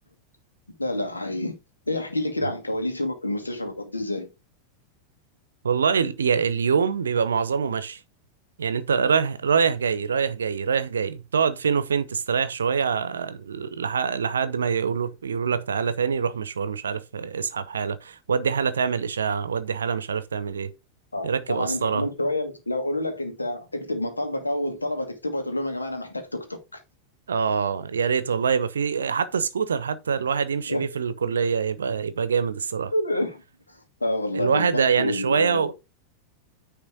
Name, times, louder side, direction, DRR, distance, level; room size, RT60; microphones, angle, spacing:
voice 1, 0.8-1.6 1.9-4.3 21.1-26.8 30.7-31.0 32.9-33.4 33.7-35.7, left 1 dB, 80° left, 1.7 m, -28 dB
voice 2, 5.6-8.0 8.6-20.7 21.2-22.1 27.3-32.9 34.3-35.7, right 6 dB, 70° right, 0.7 m, -25 dB
9.6 x 3.3 x 4.8 m
figure-of-eight pair, 90°, 0 cm